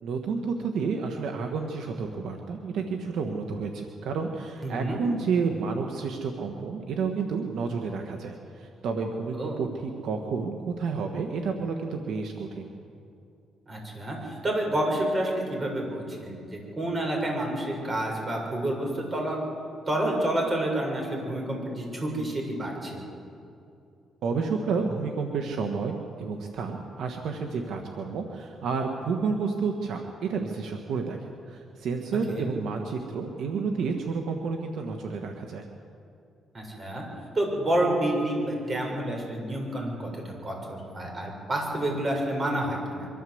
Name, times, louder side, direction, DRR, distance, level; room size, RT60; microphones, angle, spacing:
voice 1, 0.0-12.7 24.2-35.6, right 5 dB, 75° right, 3 dB, 1.6 m, -30 dB
voice 2, 4.6-5.0 9.3-9.6 13.7-19.4 19.9-23.0 32.3-32.5 36.5-37.0 37.3-43.1, right 1 dB, 30° right, 0 dB, 6.7 m, -29 dB
24.0 x 13.5 x 8.0 m, 2.6 s
cardioid pair, 90°, 0 cm